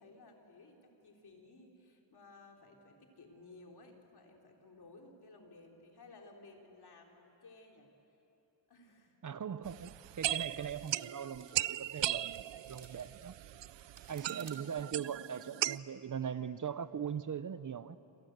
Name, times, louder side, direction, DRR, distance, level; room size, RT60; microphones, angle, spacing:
voice 1, 0.0-7.9 8.7-9.1, left 3 dB, 65° left, 1 dB, 3.5 m, -57 dB
voice 2, 9.2-13.3 14.1-18.0, right 8 dB, 45° right, 14 dB, 0.7 m, -40 dB
sound 1, 9.7-15.8, right 13 dB, 90° right, 0.5 m, -38 dB
sound 2, 10.4-15.3, right 6 dB, 70° right, 2.6 m, -59 dB
28.0 x 26.5 x 8.0 m, 2.9 s
wide cardioid pair, 165°, 42 cm